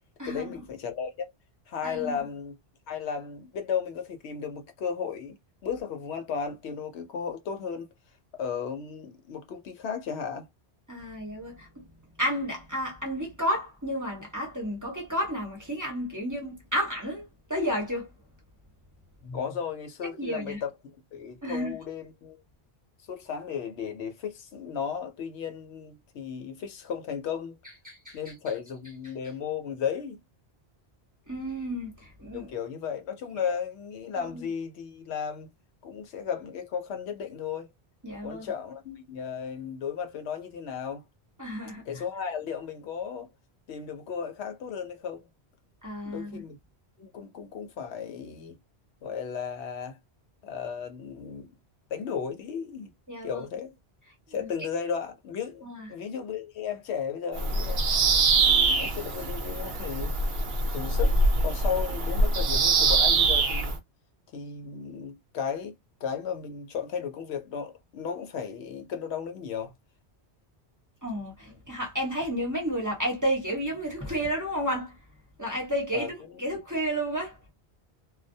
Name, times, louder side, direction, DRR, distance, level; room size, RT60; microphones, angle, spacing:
voice 1, 0.2-1.1 1.7-2.5 2.9-5.4 5.6-7.9 8.4-10.4 19.2-20.7 21.1-22.4 23.1-27.6 28.1-30.2 32.3-35.5 35.8-37.7 38.2-41.0 41.8-43.3 43.7-45.3 46.0-46.6 47.0-48.6 49.0-50.0 50.4-51.5 51.9-52.9 53.2-53.8 54.3-57.8 58.4-60.1 60.7-63.8 64.3-65.7 66.0-69.7 75.9-76.4, left 7 dB, 80° left, 0.9 m, -34 dB
voice 2, 1.8-2.2 10.9-11.7 12.2-18.1 20.2-20.6 21.4-21.7 27.9-28.2 31.3-31.9 32.2-32.5 34.2-34.4 38.0-38.5 41.4-41.8 45.8-46.4 53.1-53.4 55.6-55.9 71.0-74.9 75.4-77.5, equal, 20° right, 0.7 m, -31 dB
Bird vocalization bird call bird song, 57.3-63.8, right 3 dB, 70° right, 0.8 m, -24 dB
2.2 x 2.1 x 2.6 m
omnidirectional pair, 1.1 m